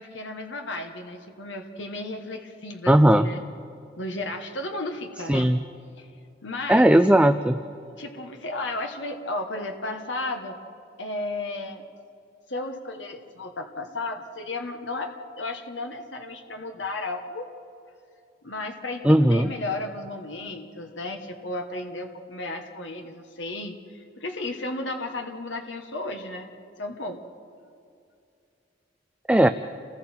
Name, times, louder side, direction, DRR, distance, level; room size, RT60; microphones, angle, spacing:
voice 1, 0.0-3.4 4.0-5.5 6.0-6.1 6.4-6.9 8.0-10.6 11.0-11.8 12.5-17.5 18.4-26.5 26.8-27.2, left 2 dB, 80° left, 4 dB, 1.4 m, -34 dB
voice 2, 2.9-3.3 5.3-5.6 6.7-7.6 19.0-19.5 29.3-29.5, right 1 dB, 5° right, 9 dB, 0.4 m, -17 dB
30.0 x 20.5 x 4.5 m, 2.6 s
head